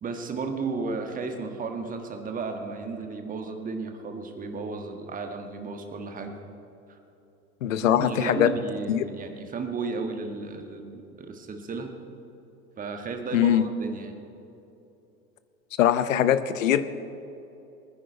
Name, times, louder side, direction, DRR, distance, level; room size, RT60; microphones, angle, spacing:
voice 1, 0.0-6.3 7.9-11.9 12.8-14.1, right 4 dB, 20° right, 5 dB, 1.5 m, -34 dB
voice 2, 7.6-8.5 8.9-9.0 13.3-13.6 15.8-16.8, left 11 dB, 60° left, 13 dB, 0.9 m, -21 dB
24.0 x 10.0 x 4.5 m, 2.8 s
figure-of-eight pair, 85°, 44 cm